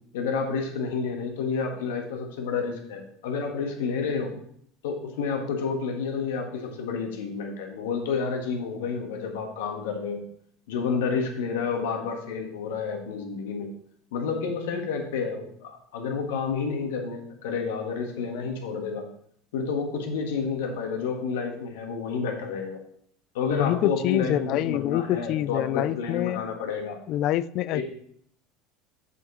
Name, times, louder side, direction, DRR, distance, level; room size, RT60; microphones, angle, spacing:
voice 1, 0.1-4.3 4.8-10.2 10.7-13.7 14.1-19.1 19.5-22.8 23.3-27.0 27.7-27.8, left 5 dB, 75° left, 3 dB, 1.7 m, -30 dB
voice 2, 23.5-26.4 27.1-27.8, left 13 dB, 55° left, 18 dB, 0.4 m, -26 dB
7.2 x 7.0 x 4.1 m, 0.66 s
hypercardioid pair, 85°, 0 cm